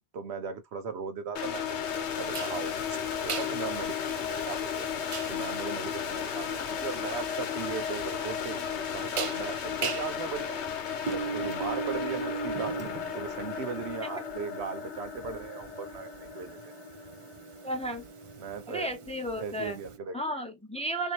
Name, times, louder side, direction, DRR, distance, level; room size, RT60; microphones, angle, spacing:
voice 1, 0.1-1.6 1.9-4.9 5.3-8.7 8.9-10.6 11.1-16.7 18.4-18.9 19.4-20.2, right 5 dB, 75° right, 1.0 m, -38 dB
sound 1, 1.4-18.2, left 7 dB, 80° left, 1.0 m, -34 dB
sound 2, 2.3-20.0, right 5 dB, 50° right, 0.3 m, -40 dB
voice 2, 17.6-18.0 18.7-19.8 20.1-21.1, right 1 dB, 5° left, 0.6 m, -33 dB
3.5 x 2.7 x 2.9 m
omnidirectional pair, 1.1 m